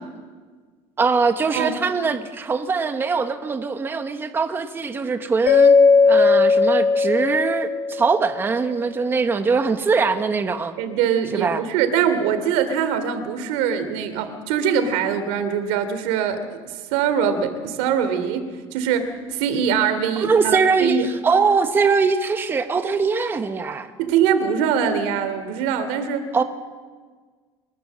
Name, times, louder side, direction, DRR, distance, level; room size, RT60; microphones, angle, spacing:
voice 1, 1.0-5.8 6.0-10.7 11.3-11.6 20.2-23.9 26.3-26.4, right 4 dB, 20° right, 8 dB, 1.1 m, -22 dB
Mallet percussion, 5.5-8.5, left 4 dB, 55° left, 2.7 m, -17 dB
voice 2, 10.8-16.6 16.9-21.1 24.0-26.3, right 7 dB, 90° right, 10 dB, 3.0 m, -23 dB
24.5 x 21.0 x 7.4 m, 1.5 s
cardioid pair, 165°, 12 cm